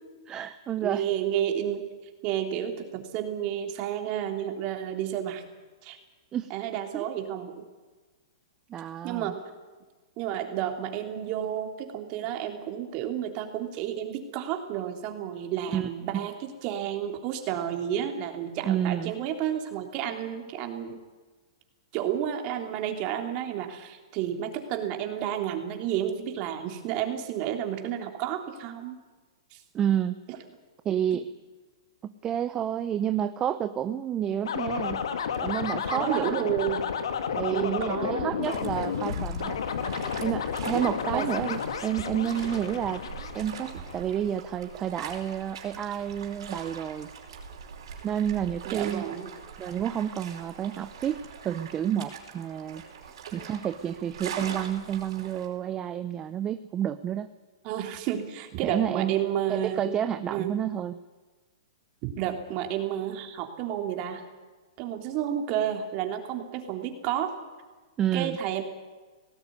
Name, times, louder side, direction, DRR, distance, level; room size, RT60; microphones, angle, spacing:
voice 1, 0.3-1.1 6.3-6.5 6.9-7.1 8.7-9.3 15.7-16.3 18.6-19.1 29.7-30.2 30.8-31.3 32.0-35.0 35.4-36.3 37.4-39.6 40.2-47.1 48.0-49.1 49.6-57.3 58.6-59.1 59.5-61.0 68.0-68.4, right 10 dB, 25° right, 11 dB, 0.8 m, -30 dB
voice 2, 0.8-1.8 2.2-5.4 5.8-6.0 6.5-7.6 9.0-9.4 10.2-21.0 21.9-29.0 29.5-29.6 30.3-30.4 35.8-36.9 37.5-38.8 41.1-41.5 48.6-49.3 57.6-60.0 60.3-60.6 62.0-64.2 64.8-67.3 68.1-68.6, right 10 dB, 40° right, 4 dB, 3.5 m, -31 dB
sound 1, 34.4-44.0, left 7 dB, 75° left, 2.0 m, -32 dB
sound 2, 38.4-55.5, right 6 dB, 70° right, 4.9 m, -42 dB
18.5 x 17.0 x 9.6 m, 1.3 s
hypercardioid pair, 125°, 3 cm